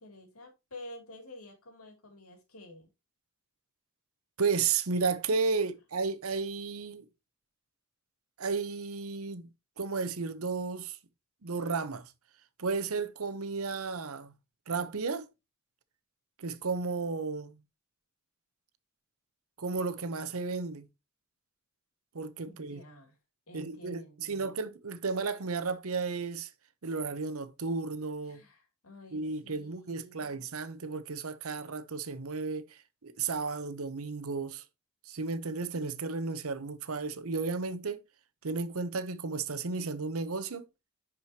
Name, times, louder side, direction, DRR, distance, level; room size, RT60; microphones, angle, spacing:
voice 1, 0.0-2.9 22.4-23.2 23.5-24.6 28.3-30.4, left 1 dB, 90° left, 2.8 m, -50 dB
voice 2, 4.4-7.0 8.4-9.5 9.8-11.0 11.4-12.1 12.6-14.3 14.7-15.3 16.4-17.6 19.6-20.9 22.1-22.8 23.5-26.5 26.8-28.4 29.1-34.6 35.1-38.0 38.4-40.7, right 4 dB, 75° right, 0.8 m, -33 dB
10.5 x 5.0 x 2.8 m
head